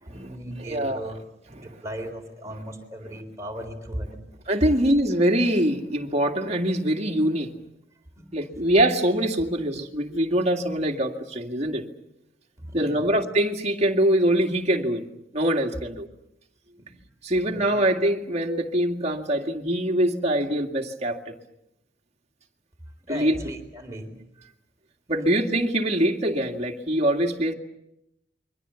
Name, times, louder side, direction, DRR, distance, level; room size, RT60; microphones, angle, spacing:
voice 1, 0.0-4.3 8.2-8.3 12.6-13.1 16.8-17.0 17.4-17.8 23.0-24.2, equal, 15° right, 3 dB, 4.0 m, -37 dB
voice 2, 0.6-1.1 1.6-1.7 4.5-7.5 8.3-11.9 12.7-15.0 15.3-16.1 17.2-21.3 23.1-23.4 25.1-27.5, right 1 dB, 40° right, 2 dB, 2.2 m, -23 dB
28.5 x 23.5 x 7.1 m, 0.84 s
head